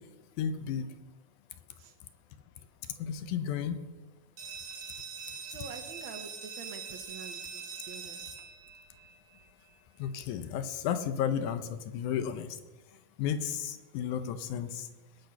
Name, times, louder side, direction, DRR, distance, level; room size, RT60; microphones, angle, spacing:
voice 1, 0.4-0.9 3.0-3.8 10.0-12.6 13.2-14.9, left 8 dB, 75° left, 10 dB, 2.0 m, -33 dB
sound 1, 4.4-9.8, right 6 dB, 55° right, 1.2 m, -43 dB
voice 2, 5.4-8.3, right 5 dB, 85° right, 4 dB, 1.1 m, -46 dB
19.0 x 6.6 x 5.7 m, 1.2 s
omnidirectional pair, 3.7 m